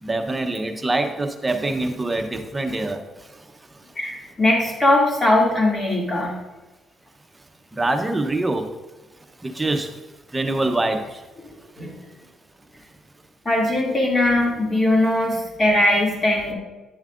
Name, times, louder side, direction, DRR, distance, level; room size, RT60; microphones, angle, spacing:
voice 1, 0.0-3.5 7.7-8.7 9.4-10.0 10.3-11.2, right 2 dB, 20° right, 5 dB, 0.9 m, -25 dB
voice 2, 4.0-6.3 11.8-12.0 13.4-16.5, left 1 dB, 35° left, -2 dB, 2.5 m, -20 dB
10.0 x 7.2 x 2.5 m, 1.1 s
cardioid pair, 90°, 0 cm